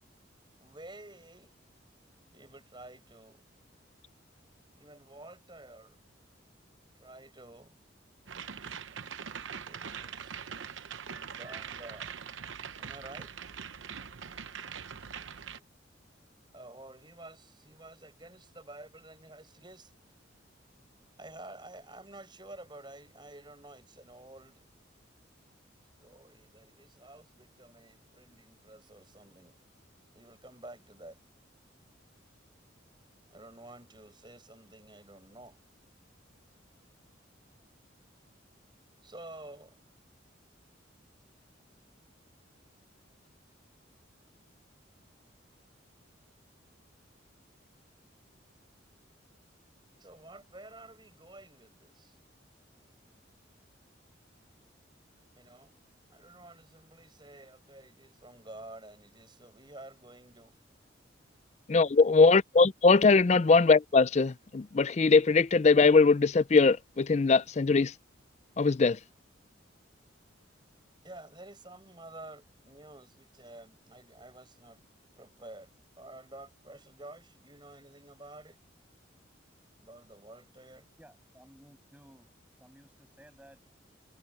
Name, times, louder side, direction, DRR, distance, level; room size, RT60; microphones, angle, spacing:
voice 1, 0.6-1.5 2.3-3.4 4.8-6.0 6.9-7.8 9.2-10.6 11.1-12.1 12.8-13.3 16.5-19.9 21.2-24.6 26.0-29.6 30.1-31.2 33.3-35.6 39.0-39.8 50.0-52.2 55.4-55.7 56.1-60.6 61.9-62.0 71.0-74.8 75.2-75.7 76.0-78.6 79.8-80.9, right 2 dB, 25° right, 7.7 m, -50 dB
sound 1, 8.3-15.6, right 7 dB, 80° right, 0.8 m, -42 dB
voice 2, 61.7-67.9 68.6-69.0, left 4 dB, 35° left, 0.4 m, -21 dB
voice 3, 81.0-83.7, equal, 10° right, 7.5 m, -57 dB
head